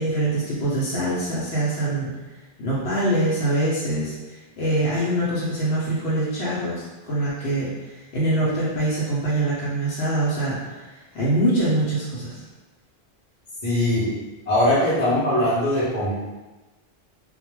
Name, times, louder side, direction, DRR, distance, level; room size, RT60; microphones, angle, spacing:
voice 1, 0.0-2.1 2.6-12.4, right 1 dB, 75° left, -8 dB, 0.8 m, -24 dB
voice 2, 13.6-14.1 14.5-16.1, left 1 dB, 45° left, -8 dB, 0.6 m, -21 dB
2.2 x 2.0 x 3.0 m, 1.1 s
omnidirectional pair, 1.0 m